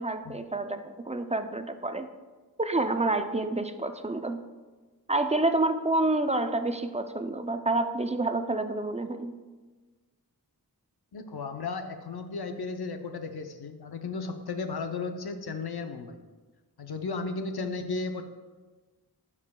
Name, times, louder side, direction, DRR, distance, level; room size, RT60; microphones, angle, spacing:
voice 1, 0.0-2.1 2.6-4.4 5.1-9.3, right 2 dB, 20° right, 8 dB, 0.4 m, -28 dB
voice 2, 11.1-16.2 16.8-18.2, left 4 dB, 80° left, 6 dB, 0.7 m, -34 dB
12.0 x 4.9 x 2.2 m, 1.3 s
wide cardioid pair, 50°, 37 cm